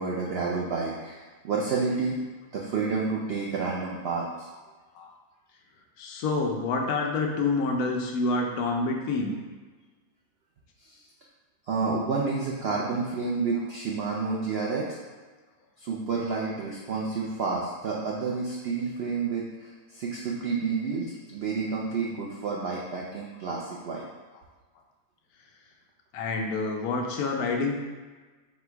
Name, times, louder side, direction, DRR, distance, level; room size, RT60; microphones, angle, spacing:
voice 1, 0.0-2.2 2.5-4.5 10.8-11.0 11.7-15.0 15.8-24.1, right 4 dB, 80° right, -3 dB, 0.5 m, -30 dB
voice 2, 6.0-9.3 26.1-27.8, left 3 dB, 75° left, 1 dB, 1.1 m, -27 dB
4.3 x 2.2 x 4.4 m, 1.4 s
omnidirectional pair, 1.6 m